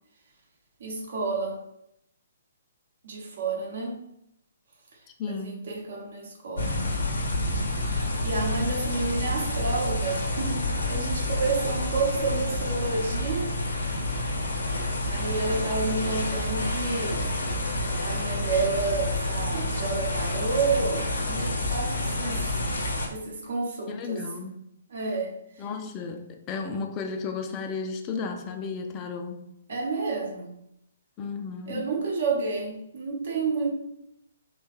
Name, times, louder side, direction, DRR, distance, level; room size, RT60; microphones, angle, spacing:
voice 1, 0.8-1.6 3.0-4.0 5.3-6.8 7.8-13.5 15.0-17.3 18.0-22.5 23.1-24.2 24.9-25.3 29.7-30.5 31.7-33.7, right 4 dB, 60° right, 0 dB, 0.8 m, -30 dB
voice 2, 5.2-5.7 23.9-24.6 25.6-29.6 31.2-31.9, left 4 dB, 25° left, 5 dB, 0.3 m, -34 dB
sound 1, 6.6-23.1, left 1 dB, 70° left, 0.7 m, -29 dB
3.1 x 2.1 x 3.0 m, 0.79 s
figure-of-eight pair, 125°, 0 cm